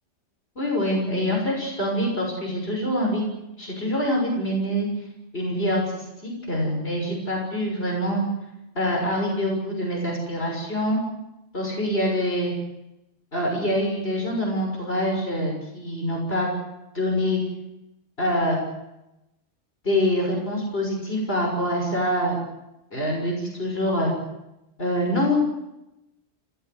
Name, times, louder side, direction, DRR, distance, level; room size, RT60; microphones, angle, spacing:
voice 1, 0.6-3.2 3.6-4.9 5.3-8.2 8.7-11.0 11.5-12.5 13.3-16.5 16.9-17.4 18.2-18.6 19.8-22.4 22.9-24.1 24.8-25.4, equal, 55° left, 0 dB, 6.7 m, -25 dB
28.5 x 19.5 x 8.1 m, 0.91 s
omnidirectional pair, 1.2 m